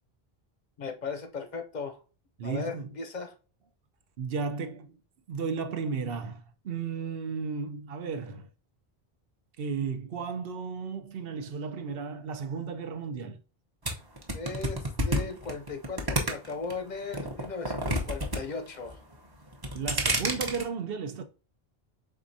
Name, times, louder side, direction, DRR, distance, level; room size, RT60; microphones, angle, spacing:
voice 1, 0.8-2.0 2.4-3.3 14.3-19.0, left 4 dB, 50° left, 0.7 m, -37 dB
voice 2, 2.4-2.9 4.2-5.0 5.3-8.5 9.6-13.4 19.7-21.2, right 5 dB, 70° right, 0.9 m, -34 dB
sound 1, 13.8-16.7 17.1-18.4 18.7-19.1 19.5-20.6, right 1 dB, 25° right, 0.8 m, -29 dB
4.7 x 3.7 x 2.6 m
omnidirectional pair, 1.0 m